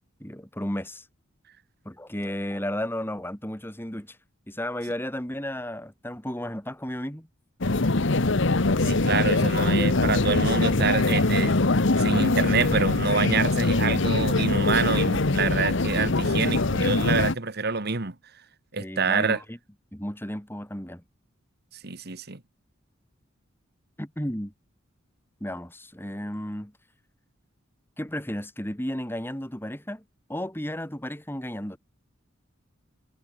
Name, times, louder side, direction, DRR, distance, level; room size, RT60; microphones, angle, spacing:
voice 1, 0.2-1.1 1.8-4.2 4.5-7.3 18.8-19.6 19.9-21.0 24.0-24.5 25.4-26.7 28.0-30.0 30.3-31.8, left 1 dB, 10° left, 3.3 m, -33 dB
sound 1, 7.6-17.3, left 2 dB, 65° left, 1.2 m, -23 dB
voice 2, 8.8-11.6 12.0-18.1 18.7-19.4 21.8-22.4, right 5 dB, 50° right, 1.6 m, -27 dB
head